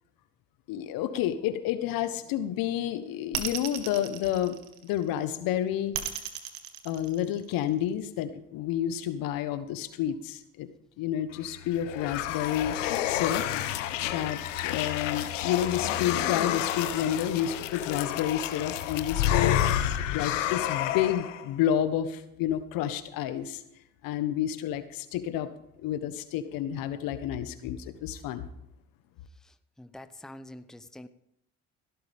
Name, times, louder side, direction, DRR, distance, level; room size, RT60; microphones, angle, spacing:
voice 1, 0.7-5.9 6.8-10.7 11.0-12.8 13.1-13.4 14.0-19.6 20.1-23.6 24.0-25.5 25.8-28.5, left 11 dB, 65° left, 11 dB, 1.4 m, -30 dB
sound 1, 3.3-5.1 5.9-7.7, right 11 dB, 80° right, 1.8 m, -35 dB
sound 2, 11.4-21.4, left 11 dB, 85° left, 1.1 m, -29 dB
voice 2, 29.4-31.1, left 1 dB, ahead, 11 dB, 0.9 m, -46 dB
17.0 x 13.0 x 3.6 m, 0.79 s
hypercardioid pair, 65°, 36 cm